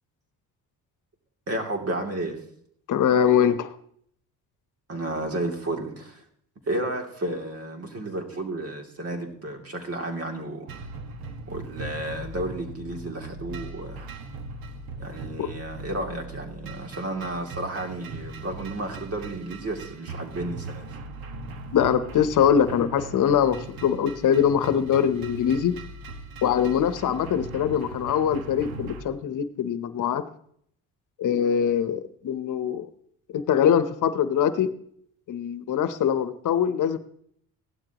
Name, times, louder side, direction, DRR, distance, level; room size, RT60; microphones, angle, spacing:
voice 1, 1.5-2.4 4.9-6.2 6.7-10.7 11.5-14.1 15.0-20.9, right 1 dB, 40° right, 3 dB, 2.9 m, -32 dB
voice 2, 2.9-3.7 15.4-15.5 21.7-25.8 26.4-30.2 31.2-32.9 33.3-34.7 35.3-37.0, left 8 dB, 60° left, 12 dB, 1.0 m, -23 dB
sound 1, 10.7-29.0, right 3 dB, 75° right, 1.6 m, -39 dB
16.0 x 12.0 x 3.0 m, 0.66 s
cardioid pair, 85°, 35 cm